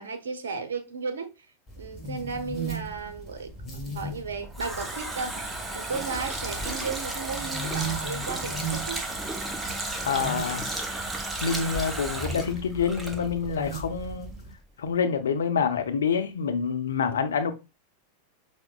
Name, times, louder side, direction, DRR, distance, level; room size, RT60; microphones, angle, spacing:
voice 1, 0.0-1.5 1.8-3.5 3.9-9.0, right 5 dB, 65° right, 0.7 m, -34 dB
sound 1, 1.7-14.5, right 2 dB, 10° left, 1.6 m, -38 dB
Water tap faucet, 4.2-13.7 14.0-14.1, right 2 dB, 10° right, 0.6 m, -34 dB
voice 2, 10.0-10.7 11.4-14.3 14.8-17.5, left 6 dB, 65° left, 0.6 m, -27 dB
5.7 x 2.1 x 2.3 m
figure-of-eight pair, 90°, 0 cm